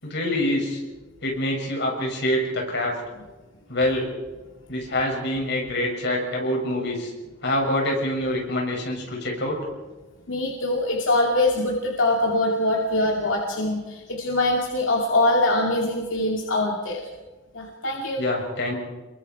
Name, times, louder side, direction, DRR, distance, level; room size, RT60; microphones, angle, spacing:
voice 1, 0.0-0.8 1.2-3.0 3.7-4.1 4.7-7.1 7.4-9.6 18.2-18.8, left 1 dB, 60° left, 0 dB, 6.8 m, -25 dB
voice 2, 10.3-17.1 17.5-18.2, left 1 dB, 85° left, -1 dB, 2.6 m, -23 dB
28.0 x 22.5 x 4.7 m, 1.2 s
head